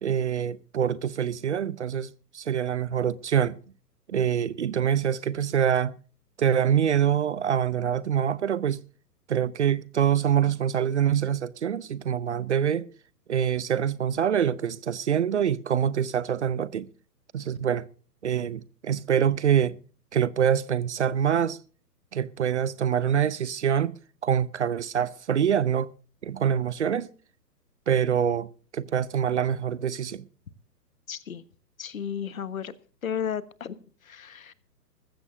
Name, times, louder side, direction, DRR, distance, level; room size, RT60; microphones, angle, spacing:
voice 1, 0.0-3.6 4.1-5.9 6.4-8.8 9.3-12.9 13.3-16.9 17.3-17.9 18.2-19.8 20.1-21.6 22.1-23.9 24.2-25.9 26.2-27.1 27.9-28.5 28.7-30.2, right 9 dB, 45° right, 0.7 m, -25 dB
voice 2, 31.1-31.4 31.8-32.7 33.0-34.5, left 8 dB, 55° left, 1.3 m, -34 dB
20.5 x 15.0 x 2.6 m
figure-of-eight pair, 125°, 49 cm